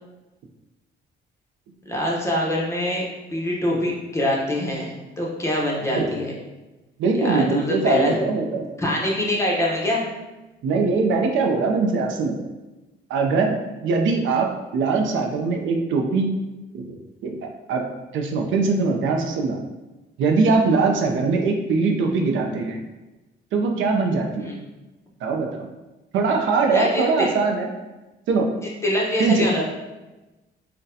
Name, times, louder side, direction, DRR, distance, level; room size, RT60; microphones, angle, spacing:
voice 1, 1.8-3.1 3.3-6.3 7.2-8.2 8.8-10.1 24.4-24.6 26.7-27.3 28.8-29.6, left 1 dB, 15° left, -4 dB, 0.8 m, -24 dB
voice 2, 7.0-8.7 10.6-12.4 13.1-16.4 16.7-16.9 17.2-17.4 17.7-17.8 18.1-19.6 20.2-22.8 23.5-24.5 25.2-25.7 26.1-27.7 28.3-28.5 29.2-29.5, right 4 dB, 75° right, 2 dB, 0.5 m, -22 dB
3.8 x 2.2 x 2.7 m, 1.1 s
cardioid pair, 90°, 20 cm